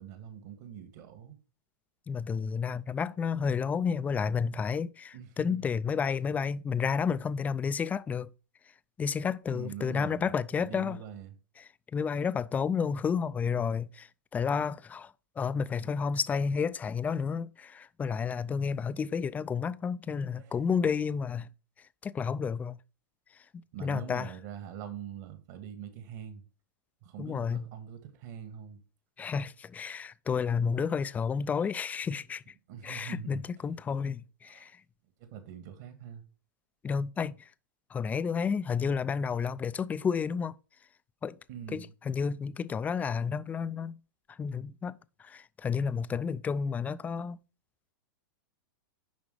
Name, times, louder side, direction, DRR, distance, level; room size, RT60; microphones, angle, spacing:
voice 1, 0.0-1.4 5.1-5.7 9.5-10.3 10.6-11.3 20.3-20.6 23.7-26.4 27.0-28.8 32.7-33.4 34.4-34.7 35.2-36.3 41.5-41.9, right 9 dB, 55° right, 1.8 m, -43 dB
voice 2, 2.1-8.3 9.0-11.0 11.9-21.5 22.0-22.8 23.5-24.3 27.2-27.7 29.2-32.4 32.8-34.7 36.8-37.5 37.9-40.6 41.2-41.4 41.7-44.0 44.3-44.9 45.2-47.4, left 6 dB, 15° left, 0.3 m, -31 dB
10.5 x 3.7 x 5.0 m
hypercardioid pair, 120°, 11 cm